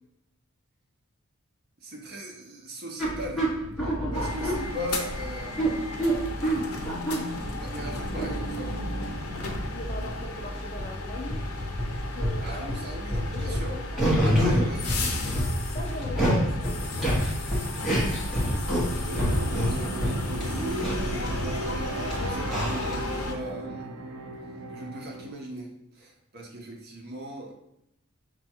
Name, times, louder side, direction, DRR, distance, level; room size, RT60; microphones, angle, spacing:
voice 1, 1.8-3.5 3.8-5.9 7.6-8.8 12.4-13.7 14.2-15.3 18.2-23.9 24.7-27.5, right 1 dB, 45° right, 0 dB, 0.8 m, -40 dB
sound 1, 3.0-23.0, equal, ahead, 1.0 m, -29 dB
sound 2, 4.1-23.3, left 2 dB, 80° left, 0.7 m, -35 dB
voice 2, 9.7-11.5 12.1-12.9 13.3-14.0 14.3-14.6 15.7-16.8 18.4-18.5, left 1 dB, 25° left, 1 dB, 0.5 m, -39 dB
sound 3, 19.3-25.3, right 2 dB, 80° right, 0.5 m, -36 dB
5.2 x 2.3 x 4.3 m, 0.81 s
head